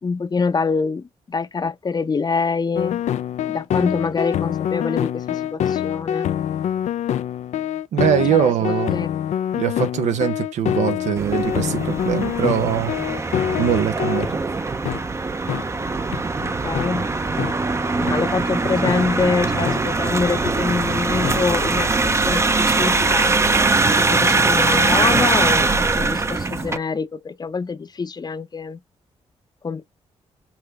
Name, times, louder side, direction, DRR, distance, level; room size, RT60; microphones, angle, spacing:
voice 1, 0.0-3.0 3.5-6.3 8.3-9.1 16.4-17.1 18.0-23.4 24.0-28.8 29.6-29.8, left 4 dB, 35° left, 0.6 m, -25 dB
sound 1, 2.8-14.3 14.9-15.0 15.5-15.6 16.1-16.2 16.8-16.9 17.4-17.5 18.1-18.2 18.9-19.0 19.7-19.8 20.5-20.6 21.2-21.4, left 10 dB, 80° left, 0.4 m, -25 dB
voice 2, 7.9-9.0 9.5-13.1 13.6-14.4, right 9 dB, 90° right, 0.9 m, -22 dB
sound 2, 11.2-26.8, right 3 dB, 25° right, 0.6 m, -21 dB
5.9 x 2.3 x 3.2 m
cardioid pair, 95°, 12 cm